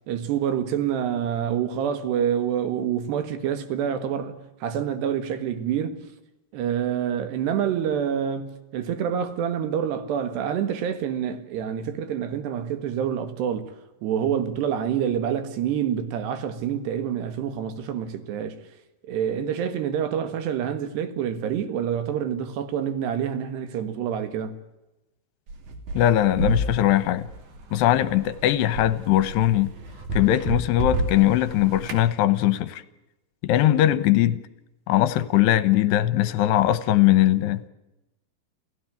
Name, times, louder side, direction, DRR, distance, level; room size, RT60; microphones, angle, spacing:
voice 1, 0.1-6.0 6.5-13.7 14.0-18.6 19.0-24.6, right 9 dB, 75° right, 3.8 m, -27 dB
sound 1, 25.5-32.1, right 1 dB, 50° right, 3.6 m, -31 dB
voice 2, 25.9-27.3 27.7-29.7 30.1-32.8 33.4-34.4 34.9-37.6, left 13 dB, 75° left, 3.0 m, -20 dB
29.0 x 16.5 x 9.2 m
omnidirectional pair, 5.0 m